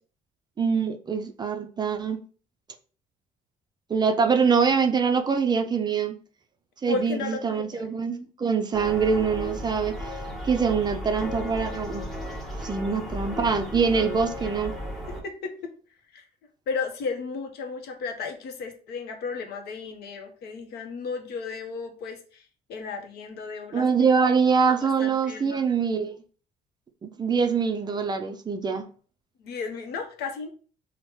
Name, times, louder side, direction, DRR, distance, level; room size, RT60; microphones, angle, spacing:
voice 1, 0.6-2.2 3.9-6.1 6.8-9.9 10.4-12.0 12.6-14.7 23.7-26.1 27.0-28.8, right 5 dB, 25° right, 0.3 m, -24 dB
voice 2, 6.9-7.8 15.1-15.7 16.1-16.2 16.7-22.4 22.7-23.9 24.7-25.6 29.4-30.5, left 5 dB, 70° left, 0.7 m, -34 dB
sound 1, 8.7-15.2, left 1 dB, ahead, 0.7 m, -35 dB
3.0 x 2.0 x 3.1 m
cardioid pair, 110°, 17 cm